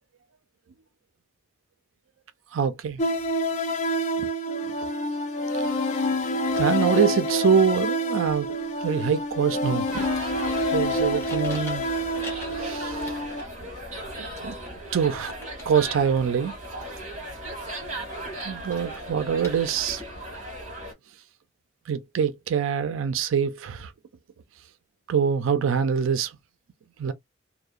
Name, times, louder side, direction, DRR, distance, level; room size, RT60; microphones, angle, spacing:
voice 1, 2.5-3.0 4.2-4.3 6.6-8.5 8.8-10.1 10.7-11.8 12.6-13.1 14.2-14.6 14.9-15.3 15.7-16.5 18.4-20.0 21.9-23.9 25.1-26.3 27.0-27.1, right 7 dB, 80° right, 0.4 m, -24 dB
sound 1, 3.0-13.4, equal, 35° left, 0.4 m, -27 dB
sound 2, 8.2-20.0, left 2 dB, 15° left, 0.9 m, -48 dB
sound 3, 9.9-20.9, right 1 dB, 35° right, 1.4 m, -37 dB
2.7 x 2.0 x 2.4 m
head